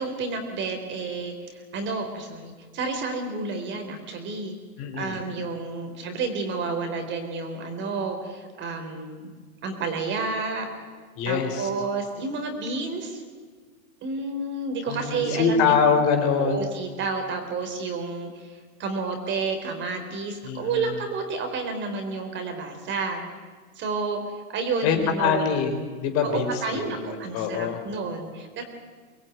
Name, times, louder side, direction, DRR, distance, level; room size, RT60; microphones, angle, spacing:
voice 1, 0.0-4.6 4.9-9.3 9.6-10.7 11.2-13.2 14.0-15.8 16.4-23.2 23.8-25.5 26.2-28.6, right 4 dB, 25° right, 6 dB, 4.2 m, -30 dB
voice 2, 4.8-5.2 11.2-11.7 14.9-16.7 20.4-21.0 24.8-27.8, left 6 dB, 30° left, 5 dB, 4.1 m, -24 dB
24.5 x 20.5 x 9.5 m, 1.5 s
hypercardioid pair, 140°, 44 cm